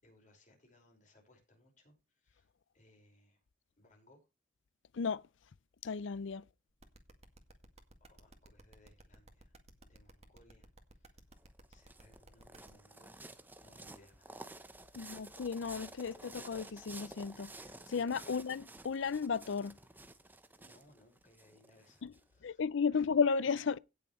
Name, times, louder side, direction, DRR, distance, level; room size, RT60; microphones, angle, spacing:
voice 1, 0.0-2.5 2.7-3.4 3.8-4.3 8.0-9.6 9.8-11.3 11.7-13.3 13.6-15.3 18.2-18.5 20.6-23.1, left 1 dB, 40° left, 5.2 m, -66 dB
voice 2, 4.9-5.3 5.8-6.4 15.0-17.5 17.9-19.7 22.0-22.1 22.4-23.8, left 5 dB, 75° left, 0.5 m, -34 dB
sound 1, 6.8-12.7, right 2 dB, 35° right, 2.0 m, -58 dB
sound 2, 11.4-22.2, right 2 dB, 10° right, 0.8 m, -52 dB
17.5 x 7.1 x 3.1 m
head